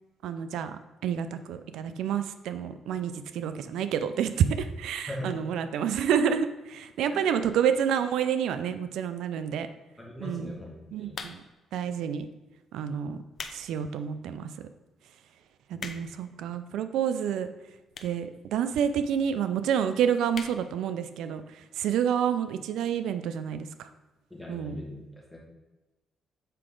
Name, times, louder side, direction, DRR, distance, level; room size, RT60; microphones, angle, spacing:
voice 1, 0.2-9.7 10.2-10.6 10.9-11.4 11.7-12.3 12.7-13.2 13.5-14.5 15.7-17.5 18.0-21.4 21.8-23.9 24.5-24.8, right 8 dB, 85° right, 10 dB, 0.4 m, -29 dB
voice 2, 5.1-5.5 7.1-7.4 10.0-11.2 15.7-15.9 24.3-25.4, left 1 dB, ahead, -3 dB, 2.2 m, -40 dB
sound 1, 11.1-11.7 12.4-12.6 13.1-13.6 14.1-14.2 14.8-14.9 15.1-15.2 15.4-16.3 17.0-17.1 17.9-18.2 18.5-18.6 18.8-18.9 19.2-19.3 19.6-19.8 20.3-20.6 21.0-21.1 21.3-21.4, left 5 dB, 50° left, 0.6 m, -40 dB
6.7 x 4.7 x 3.8 m, 1.1 s
cardioid pair, 90°, 0 cm